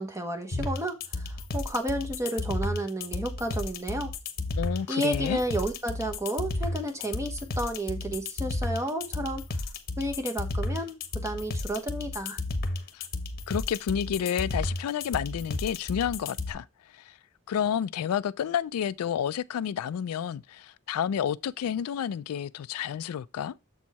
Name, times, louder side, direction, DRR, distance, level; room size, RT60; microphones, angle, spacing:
voice 1, 0.0-4.1 4.9-9.4 10.0-12.4, right 1 dB, 15° right, 1.0 m, -31 dB
sound 1, 0.5-16.5, left 2 dB, 45° left, 0.9 m, -32 dB
voice 2, 4.6-5.4 12.9-13.1 13.5-16.7 16.9-17.2 17.5-23.5, left 8 dB, 75° left, 0.3 m, -30 dB
7.2 x 4.5 x 4.1 m
head